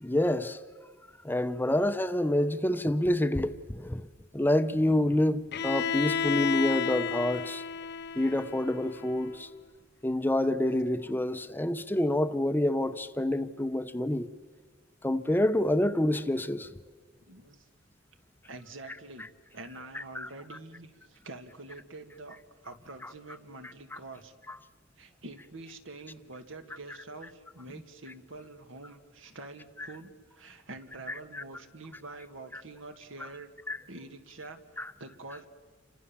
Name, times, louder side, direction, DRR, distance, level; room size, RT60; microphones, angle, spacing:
voice 1, 0.0-0.6 1.2-4.0 4.3-7.6 8.2-9.5 10.0-14.3 15.0-16.7 19.9-20.3 23.9-24.0 31.3-31.4 32.5-32.6 33.7-33.8 34.8-34.9, left 1 dB, 10° left, 0.7 m, -27 dB
Bowed string instrument, 5.5-9.4, left 6 dB, 60° left, 0.7 m, -32 dB
voice 2, 17.3-17.7 18.4-22.4 22.6-24.3 25.0-33.5 33.9-35.5, right 2 dB, 75° right, 2.1 m, -46 dB
29.0 x 25.0 x 7.1 m
head